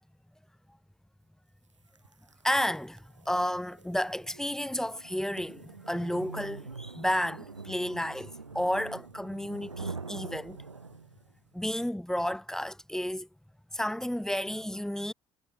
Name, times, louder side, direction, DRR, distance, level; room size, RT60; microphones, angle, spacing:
sound 1, 1.9-11.3, right 4 dB, 85° right, 2.4 m, -45 dB
voice 1, 2.4-10.6 11.5-13.3 13.7-15.1, equal, 5° left, 2.8 m, -32 dB
figure-of-eight pair, 50°, 15 cm